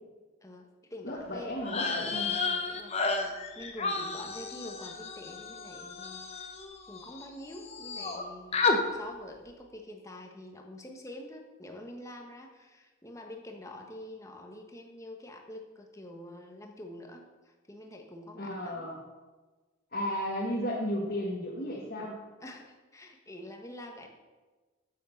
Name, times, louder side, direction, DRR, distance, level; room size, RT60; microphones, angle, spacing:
voice 1, 0.4-1.5 1.9-2.2 2.4-3.2 3.6-6.5 6.9-18.9 22.4-24.1, left 1 dB, 15° left, 2 dB, 1.3 m, -46 dB
voice 2, 1.0-2.3 18.4-19.0 19.9-22.2, equal, 45° left, -3 dB, 1.7 m, -34 dB
sound 1, 1.6-7.2 7.5-8.2 8.5-8.8, left 4 dB, 30° left, 1.0 m, -32 dB
9.4 x 8.3 x 7.1 m, 1.3 s
head